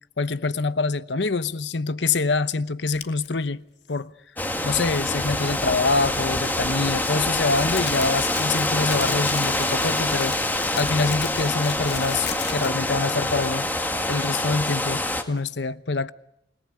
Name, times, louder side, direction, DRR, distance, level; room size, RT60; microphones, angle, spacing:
voice 1, 0.2-4.1 4.6-10.4 10.8-13.7 14.1-16.1, left 3 dB, 90° left, 0.9 m, -25 dB
sound 1, 2.9-3.3 6.4-12.9, left 9 dB, 70° left, 2.5 m, -37 dB
sound 2, 4.4-15.2, left 1 dB, 10° left, 1.8 m, -25 dB
29.0 x 19.0 x 9.7 m
head